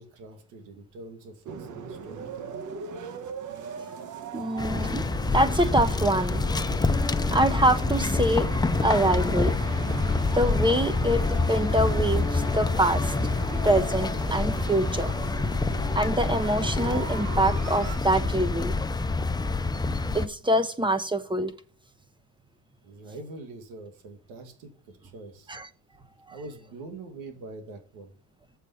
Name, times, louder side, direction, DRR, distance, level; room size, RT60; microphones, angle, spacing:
voice 1, 0.0-2.7 22.8-25.6 26.3-28.1, right 2 dB, 85° right, 2.2 m, -44 dB
sound 1, 1.5-18.0, right 6 dB, 50° right, 1.3 m, -40 dB
voice 2, 4.3-5.0 5.3-6.4 7.3-8.5 8.8-9.6 10.3-11.2 11.5-13.1 13.6-15.2 15.9-18.7 20.1-21.5 25.5-25.7, right 1 dB, 10° right, 1.0 m, -25 dB
sound 2, 4.6-20.3, left 3 dB, 10° left, 0.5 m, -26 dB
7.3 x 6.9 x 5.6 m
cardioid pair, 105°, 39 cm